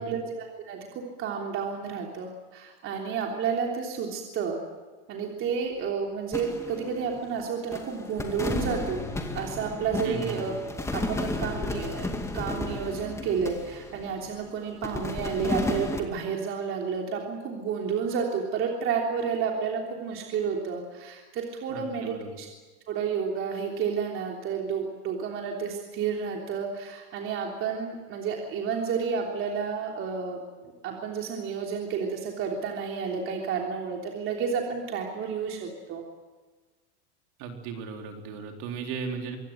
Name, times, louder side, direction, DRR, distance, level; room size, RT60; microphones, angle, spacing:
voice 1, 0.0-4.6 5.1-9.0 9.3-10.6 10.9-12.1 12.3-22.5 22.9-30.4 30.8-36.0, right 6 dB, 35° right, 1 dB, 3.3 m, -31 dB
sound 1, 6.3-7.4 7.7-14.4 14.8-16.0, left 2 dB, 10° left, 2.4 m, -33 dB
voice 2, 10.0-10.6 21.7-22.4 37.4-39.4, right 5 dB, 55° right, 3 dB, 4.3 m, -36 dB
24.5 x 16.5 x 9.2 m, 1.3 s
supercardioid pair, 135°, 34 cm